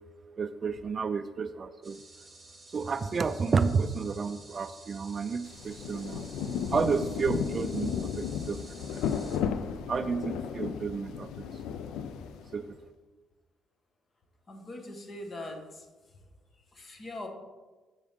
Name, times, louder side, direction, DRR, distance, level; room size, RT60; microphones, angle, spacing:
voice 1, 0.4-2.0 2.7-6.3 6.7-8.6 9.1-9.2 9.9-11.5 12.5-12.7, right 5 dB, 35° right, 11 dB, 0.3 m, -31 dB
sound 1, 1.8-9.4, right 2 dB, 15° right, 1.6 m, -52 dB
Rain, 5.5-12.7, left 7 dB, 85° left, 0.4 m, -34 dB
voice 2, 14.5-16.2 16.5-17.3, left 1 dB, 35° left, 3 dB, 1.2 m, -42 dB
7.2 x 7.0 x 3.6 m, 1.2 s
cardioid pair, 115°, 0 cm